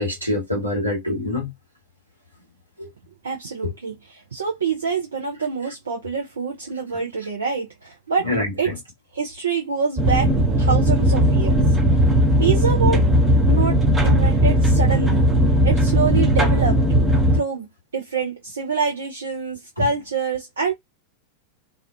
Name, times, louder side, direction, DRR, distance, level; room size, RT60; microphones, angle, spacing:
voice 1, 0.0-1.5 2.8-2.9 3.6-3.7 8.2-8.7 19.8-19.9, left 1 dB, 90° right, 1.1 m, -25 dB
voice 2, 3.2-8.3 8.6-8.7 9.1-10.3 10.6-11.6 12.4-13.0 13.5-15.3 15.6-16.8 17.1-17.7 17.9-20.7, right 5 dB, 70° right, 0.5 m, -26 dB
sound 1, 10.0-17.4, equal, 10° right, 0.6 m, -17 dB
2.4 x 2.2 x 2.4 m
figure-of-eight pair, 90°, 0 cm